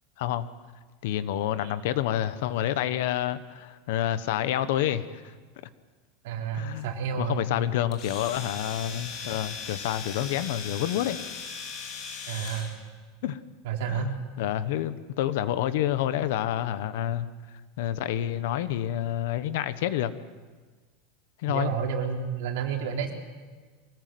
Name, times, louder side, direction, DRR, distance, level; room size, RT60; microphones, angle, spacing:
voice 1, 1.0-5.2 6.5-6.9 7.2-11.2 13.2-13.4 13.9-14.1 14.4-17.3 17.8-20.1 21.4-21.7, left 12 dB, 60° left, 13 dB, 1.1 m, -28 dB
voice 2, 6.2-7.4 12.3-12.7 13.6-14.1 21.5-23.1, right 7 dB, 60° right, 1 dB, 3.8 m, -30 dB
Domestic sounds home sounds, 7.9-12.8, left 5 dB, 30° left, 3.5 m, -38 dB
25.0 x 19.0 x 7.8 m, 1.4 s
supercardioid pair, 180°, 0 cm